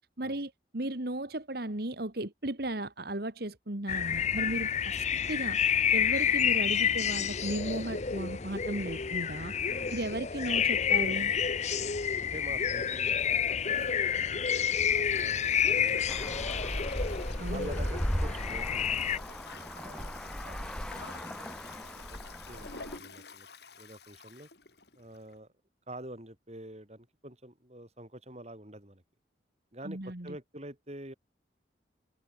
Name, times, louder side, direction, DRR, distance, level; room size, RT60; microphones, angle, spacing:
voice 1, 0.2-5.6 5.9-9.5 9.9-11.3 17.4-17.7 29.8-30.4, right 1 dB, 55° right, 2.2 m, -35 dB
sound 1, 3.9-19.2, left 8 dB, 40° left, 0.9 m, -29 dB
voice 2, 9.7-10.2 11.8-14.6 15.1-17.1 17.5-19.0 19.5-20.8 21.2-23.5 23.8-24.5 24.9-25.5 25.9-29.0 29.7-31.1, right 1 dB, 35° right, 4.8 m, -47 dB
Toilet flush, 13.6-25.4, left 4 dB, 65° left, 4.7 m, -49 dB
Traffic noise roadway noise, 16.1-23.0, equal, 5° left, 3.3 m, -37 dB
head